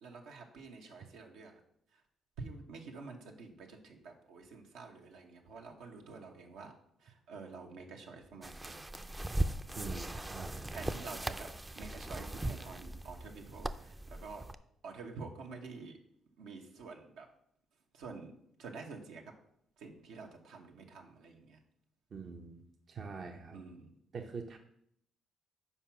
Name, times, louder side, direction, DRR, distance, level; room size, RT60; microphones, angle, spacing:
voice 1, 0.0-1.6 1.9-2.0 2.4-9.3 9.9-10.3 10.7-14.5 14.8-16.0 16.4-17.3 17.9-18.3 18.6-19.4 19.8-21.6 23.5-23.9, right 4 dB, 85° right, 1 dB, 1.0 m, -49 dB
sound 1, 8.4-14.5, right 1 dB, 15° right, 0.4 m, -39 dB
voice 2, 9.8-10.7 22.1-23.6 24.1-24.6, right 5 dB, 55° right, 3 dB, 0.7 m, -44 dB
5.7 x 4.7 x 5.8 m, 0.73 s
supercardioid pair, 70°, 0 cm